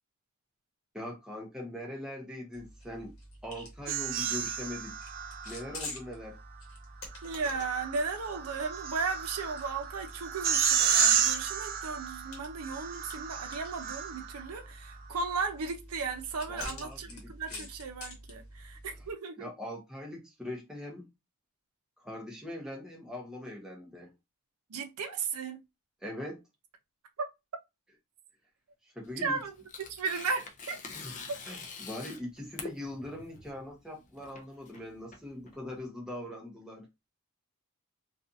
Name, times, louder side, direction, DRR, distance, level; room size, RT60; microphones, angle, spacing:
voice 1, 0.9-3.1 3.4-4.9 5.4-6.4 16.5-17.7 19.4-21.1 22.0-24.1 26.0-26.4 28.9-29.4 31.0-31.1 31.4-36.9, left 1 dB, 5° right, 0.7 m, -41 dB
sound 1, 2.5-19.1, left 1 dB, 70° left, 0.9 m, -47 dB
sound 2, 3.9-5.8 7.3-14.5, right 7 dB, 40° right, 0.3 m, -31 dB
voice 2, 7.2-19.5 24.7-25.6 27.2-27.3 29.2-29.5 29.9-30.8, right 4 dB, 85° right, 0.6 m, -35 dB
Tearing, 29.0-35.8, left 4 dB, 35° left, 0.4 m, -46 dB
2.4 x 2.3 x 2.6 m
head